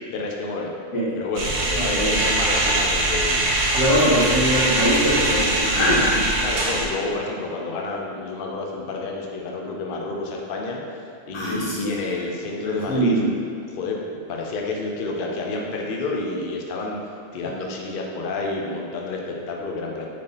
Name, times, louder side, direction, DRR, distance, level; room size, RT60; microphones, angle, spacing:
voice 1, 0.1-0.7 1.1-4.2 6.4-10.8 11.3-13.2 13.7-14.0 14.3-17.0 17.3-20.1, left 3 dB, 60° left, 0 dB, 0.6 m, -29 dB
sound 1, 1.4-6.9, right 2 dB, 85° right, 1.2 m, -22 dB
voice 2, 1.7-2.1 3.7-6.3 11.3-12.0 12.9-13.3, equal, 80° left, -8 dB, 1.6 m, -22 dB
4.1 x 3.3 x 3.8 m, 2.4 s
omnidirectional pair, 1.4 m